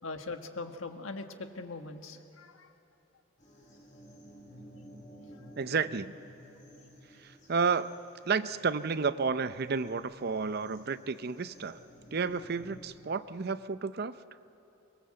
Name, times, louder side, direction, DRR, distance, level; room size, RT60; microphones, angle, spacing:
voice 1, 0.0-2.7, left 3 dB, 80° left, 6 dB, 1.5 m, -41 dB
sound 1, 3.4-12.8, equal, 40° left, 5.6 m, -54 dB
voice 2, 5.6-6.2 7.2-8.0 8.2-11.8 12.1-14.2, right 5 dB, 50° right, 14 dB, 0.6 m, -31 dB
24.0 x 22.0 x 7.7 m, 2.9 s
head